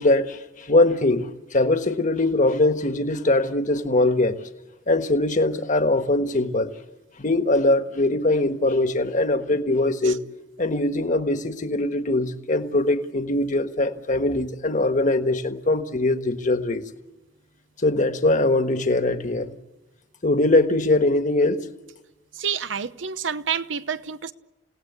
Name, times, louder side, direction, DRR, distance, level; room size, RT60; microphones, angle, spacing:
voice 1, 0.0-4.4 4.9-6.7 7.2-10.2 10.6-16.8 17.8-19.5 20.2-21.7, left 2 dB, 45° left, 1.4 m, -22 dB
voice 2, 22.4-24.3, right 7 dB, 90° right, 0.9 m, -28 dB
29.5 x 17.5 x 8.2 m
head